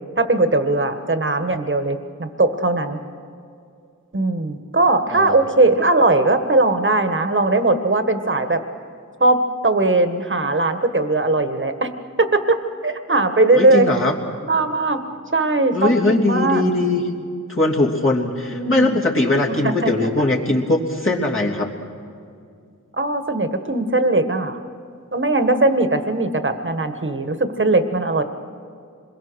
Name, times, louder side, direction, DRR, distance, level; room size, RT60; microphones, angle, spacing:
voice 1, 0.2-3.0 4.1-8.6 9.2-11.9 12.2-12.6 12.8-13.9 14.5-15.0 15.3-16.6 18.5-19.0 19.4-19.9 22.9-24.6 25.1-28.2, right 2 dB, 35° right, 8 dB, 1.7 m, -19 dB
voice 2, 13.5-14.1 15.7-17.0 17.5-21.7, left 2 dB, 40° left, -3 dB, 3.2 m, -20 dB
26.5 x 22.0 x 6.4 m, 2.4 s
wide cardioid pair, 60°, 32 cm